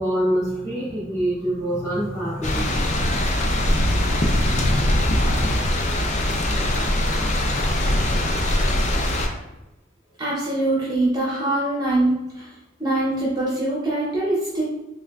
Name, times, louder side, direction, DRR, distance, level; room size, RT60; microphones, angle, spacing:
voice 1, 0.0-3.2, right 1 dB, 15° left, -9 dB, 1.3 m, -25 dB
sound 1, 2.4-9.3, left 1 dB, 35° left, 0.4 m, -21 dB
voice 2, 10.2-12.5 12.8-14.6, right 1 dB, 20° right, -7 dB, 0.6 m, -23 dB
3.6 x 3.2 x 2.2 m, 0.97 s
head